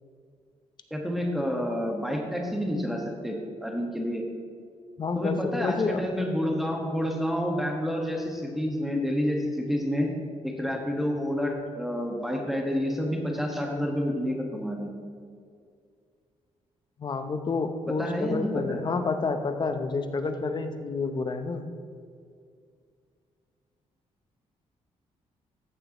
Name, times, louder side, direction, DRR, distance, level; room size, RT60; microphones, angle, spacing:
voice 1, 0.9-4.2 5.1-10.1 10.4-14.9 18.0-18.8, equal, ahead, 0 dB, 1.5 m, -29 dB
voice 2, 5.0-6.0 17.0-21.6, left 4 dB, 35° left, 7 dB, 0.8 m, -29 dB
14.5 x 7.0 x 3.0 m, 2.2 s
cardioid pair, 115°, 12 cm